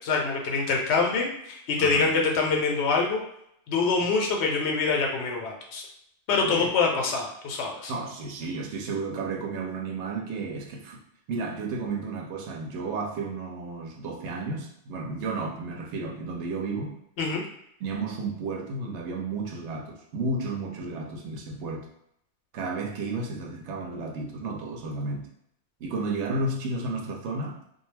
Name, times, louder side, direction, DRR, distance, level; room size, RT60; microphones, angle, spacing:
voice 1, 0.0-3.2 3.7-5.8 6.3-7.9 17.2-17.4, left 4 dB, 75° left, 1 dB, 0.8 m, -25 dB
voice 2, 1.8-2.1 6.4-7.0 7.9-11.0 11.3-17.0 17.8-21.9 22.5-25.3 25.8-27.6, right 3 dB, 80° right, 1 dB, 0.9 m, -32 dB
2.2 x 2.1 x 3.1 m, 0.75 s
omnidirectional pair, 1.2 m